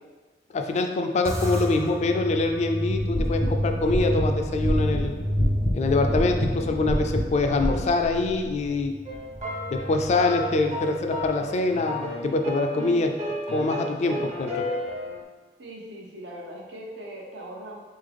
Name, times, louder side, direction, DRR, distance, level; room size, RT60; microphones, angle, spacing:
voice 1, 0.5-5.1 5.7-8.9 9.7-13.1 13.5-14.6, left 3 dB, 40° left, 5 dB, 0.3 m, -24 dB
sound 1, 1.3-11.9, equal, 15° right, 0.5 m, -30 dB
sound 2, 2.9-7.9, equal, 90° left, 0.9 m, -29 dB
sound 3, 9.0-15.2, left 1 dB, 40° right, 1.0 m, -33 dB
voice 2, 15.6-17.8, right 1 dB, 85° right, -1 dB, 0.9 m, -40 dB
3.8 x 3.7 x 3.4 m, 1.3 s
head